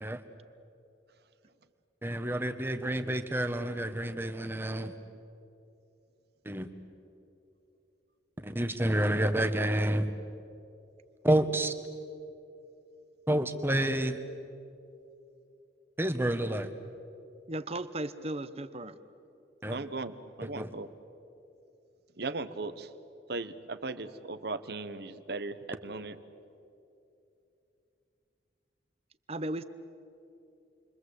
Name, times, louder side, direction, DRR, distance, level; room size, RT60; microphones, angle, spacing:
voice 1, 2.0-4.9 6.4-6.7 8.4-10.1 11.2-11.7 13.3-14.2 16.0-16.7 19.6-19.8 20.6-20.7, right 1 dB, 10° right, 8 dB, 1.3 m, -29 dB
voice 2, 17.5-18.9 29.3-29.6, right 1 dB, 35° right, 13 dB, 0.9 m, -35 dB
voice 3, 19.7-20.9 22.2-22.9 23.3-26.2, right 3 dB, 60° right, 12 dB, 1.1 m, -37 dB
29.0 x 23.5 x 8.2 m, 2.8 s
head